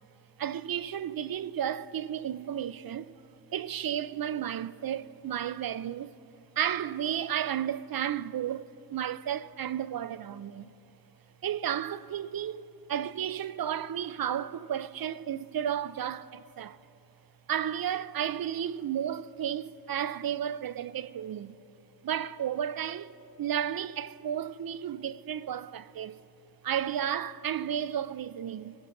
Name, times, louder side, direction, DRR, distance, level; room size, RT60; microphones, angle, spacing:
voice 1, 0.4-3.2 3.5-6.1 6.6-10.7 11.4-16.8 17.5-21.5 22.0-23.1 23.4-26.2 26.6-28.7, right 9 dB, 55° right, 0.5 m, -33 dB
23.5 x 12.0 x 3.8 m
cardioid pair, 65°, 42 cm